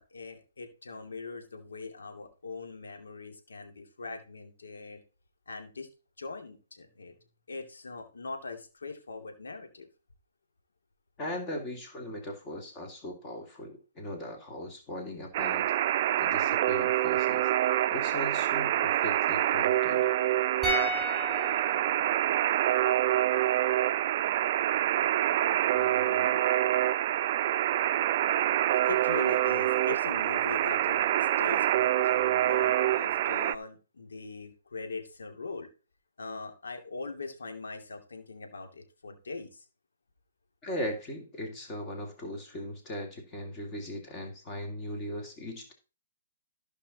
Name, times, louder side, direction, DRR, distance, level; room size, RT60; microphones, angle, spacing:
voice 1, 0.0-5.0 5.5-5.9 6.2-7.2 7.5-9.9 25.7-26.4 28.9-35.7 36.2-39.7, left 4 dB, 85° left, 5 dB, 2.6 m, -41 dB
voice 2, 11.2-15.7 16.2-17.5 17.9-20.1 40.6-45.7, equal, 25° left, 3 dB, 2.5 m, -38 dB
Alarm, 15.3-33.5, right 13 dB, 45° right, 0.5 m, -26 dB
sound 1, 20.6-23.8 24.1-24.3, left 1 dB, ahead, 5.0 m, -36 dB
14.5 x 5.4 x 4.1 m, 0.33 s
hypercardioid pair, 140°, 0 cm